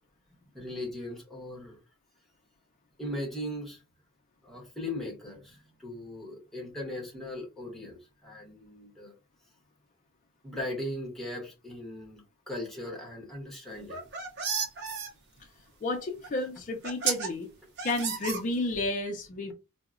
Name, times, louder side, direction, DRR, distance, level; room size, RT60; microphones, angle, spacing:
voice 1, 0.5-1.8 3.0-3.8 4.4-9.1 10.4-14.1, left 1 dB, ahead, 1.0 m, -38 dB
sound 1, 13.8-15.1 16.2-16.3 16.8-17.3 17.8-18.8, right 5 dB, 55° right, 0.7 m, -32 dB
voice 2, 15.8-17.5 17.8-19.5, left 2 dB, 40° left, 0.4 m, -31 dB
3.7 x 2.0 x 2.4 m
head